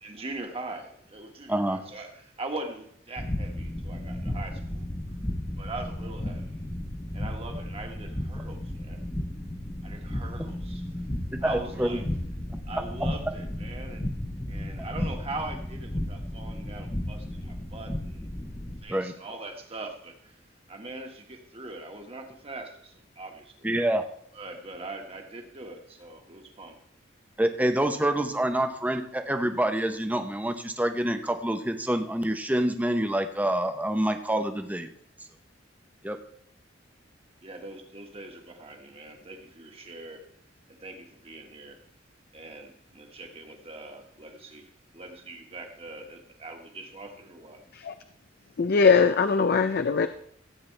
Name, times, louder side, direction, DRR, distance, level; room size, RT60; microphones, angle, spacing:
voice 1, 0.0-4.8 5.6-6.6 7.1-9.1 9.8-10.9 11.4-12.1 12.7-14.1 14.5-18.3 18.8-20.4 20.7-23.7 24.3-26.8 37.4-40.2 40.7-41.8 42.3-47.6, right 2 dB, 30° right, 1.6 m, -41 dB
sound 1, 3.2-18.8, left 1 dB, 20° left, 1.0 m, -34 dB
voice 2, 11.3-12.0 18.9-19.1 23.6-24.0 27.4-34.9 36.0-36.2, right 1 dB, 10° right, 0.8 m, -27 dB
voice 3, 48.6-50.1, left 5 dB, 55° left, 0.5 m, -21 dB
16.0 x 8.7 x 3.3 m
head